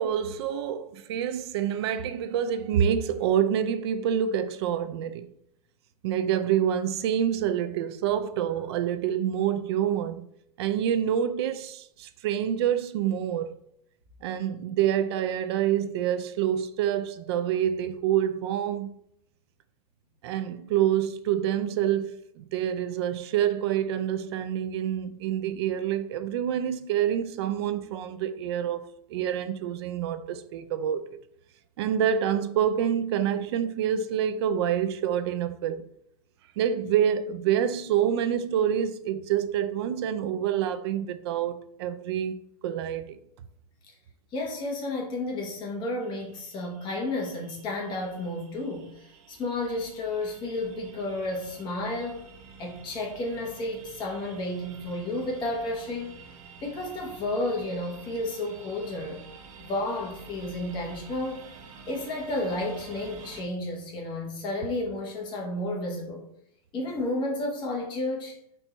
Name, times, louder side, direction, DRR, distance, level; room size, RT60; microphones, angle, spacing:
voice 1, 0.0-5.3 6.0-10.3 10.6-13.5 14.2-18.9 20.2-28.8 29.1-31.0 31.8-35.8 36.6-42.4 42.6-43.2, right 9 dB, 40° right, 0.4 m, -27 dB
voice 2, 44.3-48.9 49.3-52.3 52.6-56.2 56.6-59.3 59.6-61.5 61.9-66.2 66.7-68.4, left 2 dB, 25° left, 1.1 m, -32 dB
sound 1, 46.0-63.4, right 5 dB, 60° right, 1.2 m, -49 dB
4.4 x 2.6 x 4.5 m
supercardioid pair, 160°, 20 cm